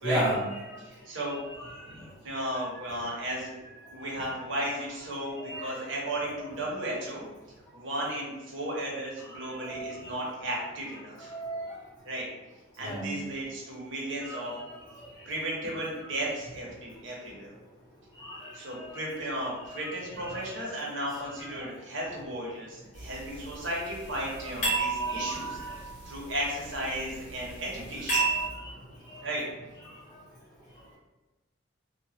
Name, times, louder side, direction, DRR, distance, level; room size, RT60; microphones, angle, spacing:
voice 1, 0.0-0.4 0.7-0.8 1.3-1.4 5.4-5.7 9.4-10.1 11.3-11.8 12.8-13.2 14.2-14.6 15.0-15.1 18.2-18.5 18.8-19.0 19.7-19.8 20.5-20.6 25.0-25.8 28.2-28.7 29.1-29.2, equal, 20° left, -10 dB, 0.7 m, -35 dB
voice 2, 0.8-1.4 1.8-3.6 3.9-7.2 7.7-11.3 12.0-12.2 12.8-14.6 15.3-17.5 18.5-25.6 26.0-28.2 29.2-29.5, right 1 dB, 65° right, -3 dB, 0.9 m, -35 dB
sound 1, 22.9-28.5, right 3 dB, 35° left, 1.2 m, -33 dB
2.9 x 2.2 x 2.8 m, 1.1 s
head